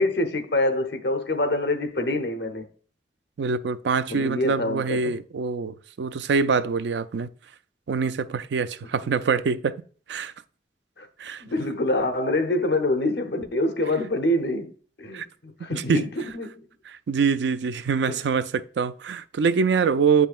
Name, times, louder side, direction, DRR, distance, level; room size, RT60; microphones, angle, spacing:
voice 1, 0.0-2.7 4.1-5.1 11.0-11.1 11.4-14.7 15.0-16.7 18.1-18.2, left 1 dB, 70° left, 0.9 m, -26 dB
voice 2, 3.4-7.3 7.9-9.8 10.1-10.3 11.2-11.4 15.1-15.3 15.9-16.1 16.9-20.3, right 5 dB, 80° right, 0.4 m, -24 dB
8.4 x 5.5 x 2.4 m
head